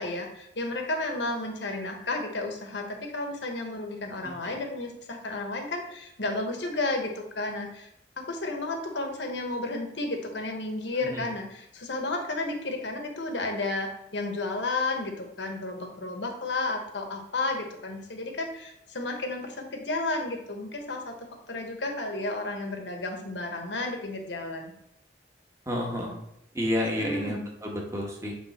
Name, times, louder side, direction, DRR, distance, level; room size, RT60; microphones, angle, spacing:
voice 1, 0.0-7.9 8.2-21.1 21.5-24.7 26.8-27.4, left 2 dB, 75° left, 3 dB, 1.1 m, -32 dB
voice 2, 25.7-26.1 26.5-28.3, left 1 dB, 15° right, -1 dB, 1.1 m, -30 dB
7.5 x 3.3 x 4.2 m, 0.77 s
head